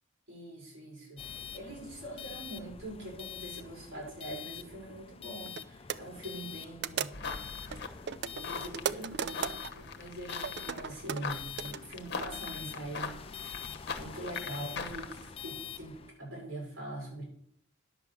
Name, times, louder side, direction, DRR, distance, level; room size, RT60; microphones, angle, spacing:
voice 1, 0.3-7.2 8.4-17.2, right 1 dB, 75° right, -3 dB, 6.0 m, -43 dB
sound 1, 1.2-16.1, left 8 dB, 30° left, 0.5 m, -46 dB
sound 2, 4.0-4.2 4.9-5.0 5.5-5.6 5.9-6.0 6.8-7.4 7.7-9.7 10.4-11.8, right 7 dB, 55° right, 0.4 m, -36 dB
sound 3, 7.1-15.3, left 5 dB, 55° left, 1.1 m, -42 dB
11.0 x 6.4 x 7.0 m, 0.68 s
head